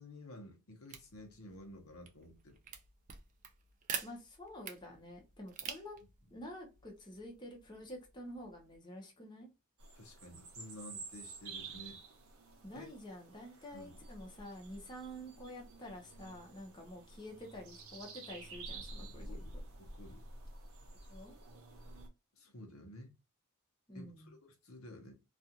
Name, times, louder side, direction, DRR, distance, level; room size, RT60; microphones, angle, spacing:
voice 1, 0.0-2.6 9.9-12.0 12.7-12.9 13.7-14.0 19.1-19.5 19.8-20.2 22.3-23.1 23.9-25.1, left 1 dB, 70° left, 0.8 m, -52 dB
sound 1, 0.9-8.8, right 7 dB, 35° right, 0.4 m, -48 dB
voice 2, 4.0-6.0 6.3-9.5 12.6-19.4 21.1-21.4 23.9-24.4, equal, 20° left, 0.7 m, -49 dB
sound 2, 9.8-22.1, right 3 dB, 75° right, 0.8 m, -50 dB
2.4 x 2.4 x 2.8 m
head